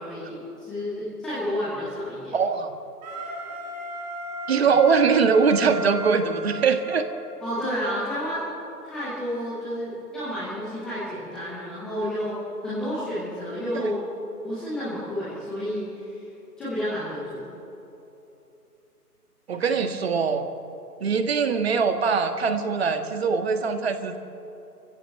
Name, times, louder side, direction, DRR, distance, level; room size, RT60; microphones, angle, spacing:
voice 1, 0.0-2.3 7.4-8.5 8.8-12.4 12.6-14.0 14.4-16.2 16.6-17.5, equal, ahead, -11 dB, 0.7 m, -30 dB
voice 2, 2.3-2.7 4.5-7.1 13.7-13.9 19.5-20.5 21.0-24.2, right 5 dB, 40° right, 8 dB, 1.6 m, -22 dB
Wind instrument woodwind instrument, 3.0-7.8, equal, 25° right, 3.7 m, -36 dB
28.0 x 15.5 x 7.8 m, 3.0 s
figure-of-eight pair, 145°, 47 cm